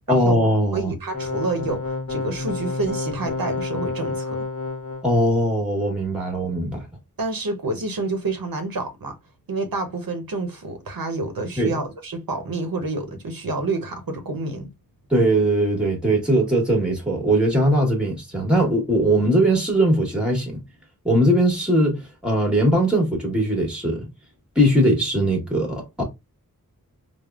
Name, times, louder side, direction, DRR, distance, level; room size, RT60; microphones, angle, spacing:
voice 1, 0.1-0.9 5.0-6.9 11.6-11.8 15.1-20.6 21.0-24.1 24.5-26.0, right 1 dB, 5° right, 1.1 m, -20 dB
voice 2, 0.7-4.4 7.2-9.2 9.5-14.7, right 3 dB, 70° right, 0.7 m, -28 dB
sound 1, 1.1-5.0, left 3 dB, 40° left, 1.0 m, -29 dB
3.4 x 2.0 x 2.3 m
wide cardioid pair, 65°, 36 cm